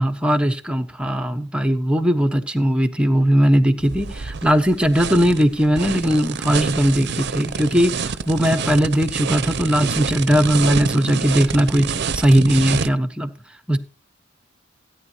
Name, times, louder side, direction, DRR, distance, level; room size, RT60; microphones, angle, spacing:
voice 1, 0.0-13.3 13.7-13.8, equal, 5° right, 1.1 m, -19 dB
sound 1, 3.8-12.9, right 5 dB, 55° right, 0.7 m, -27 dB
17.0 x 9.9 x 2.8 m
head